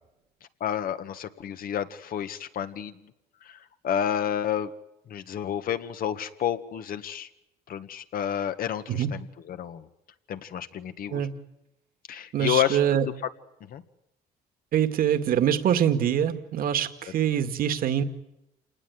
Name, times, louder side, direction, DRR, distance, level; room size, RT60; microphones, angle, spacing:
voice 1, 0.6-2.9 3.5-3.6 3.8-4.7 5.1-7.3 7.7-9.9 10.3-11.2 12.1-12.8 13.7-13.8, left 9 dB, 60° left, 10 dB, 1.8 m, -30 dB
voice 2, 12.3-13.1 14.7-18.0, right 9 dB, 60° right, 9 dB, 2.1 m, -24 dB
28.5 x 19.0 x 9.6 m, 0.88 s
cardioid pair, 110°, 17 cm